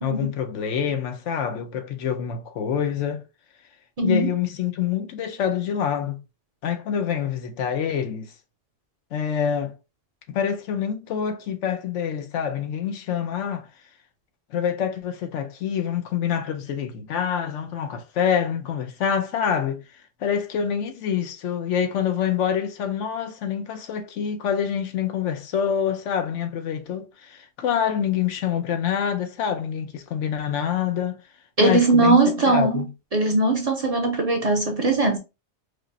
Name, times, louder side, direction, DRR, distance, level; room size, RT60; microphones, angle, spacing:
voice 1, 0.0-3.2 4.0-6.2 6.6-8.3 9.1-9.7 10.3-13.7 14.5-19.8 20.2-31.2 31.6-32.2 32.5-32.9, left 8 dB, 90° left, 1.0 m, -26 dB
voice 2, 4.0-4.3 31.6-32.9 33.1-35.2, right 2 dB, 45° right, 0.5 m, -20 dB
4.9 x 2.0 x 2.6 m
omnidirectional pair, 1.2 m